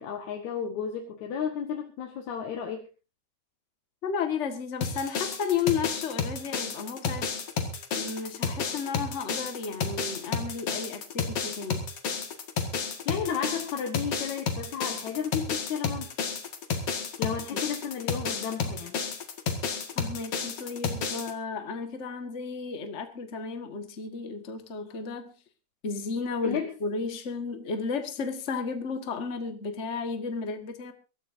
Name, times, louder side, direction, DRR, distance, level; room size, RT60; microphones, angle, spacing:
voice 1, 0.0-2.9 13.1-16.1 17.2-19.0 26.4-26.7, left 7 dB, 70° left, 2 dB, 2.7 m, -33 dB
voice 2, 4.0-7.3 7.9-11.8 17.5-17.6 19.9-25.3 25.8-30.9, left 5 dB, 30° left, 6 dB, 1.4 m, -33 dB
sound 1, 4.8-21.3, left 5 dB, 55° left, 2.8 m, -31 dB
23.5 x 14.0 x 2.7 m, 0.30 s
omnidirectional pair, 3.4 m